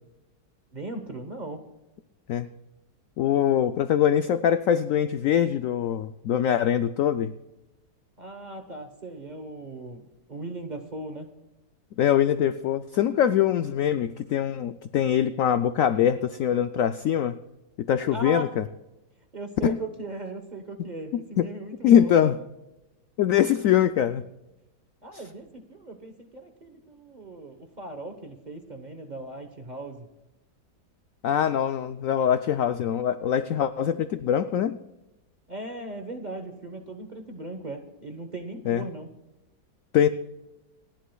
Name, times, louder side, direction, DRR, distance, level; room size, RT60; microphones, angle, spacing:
voice 1, 0.7-1.6 8.2-11.3 18.1-18.5 19.3-22.1 25.0-30.1 35.5-39.1, right 2 dB, 30° right, 5 dB, 1.0 m, -38 dB
voice 2, 3.2-7.3 12.0-17.4 17.8-18.6 19.6-19.8 21.8-22.4 23.2-24.2 31.2-34.8 38.7-38.8 39.9-40.1, left 9 dB, 75° left, 11 dB, 0.7 m, -23 dB
28.0 x 11.0 x 2.3 m, 0.98 s
omnidirectional pair, 1.9 m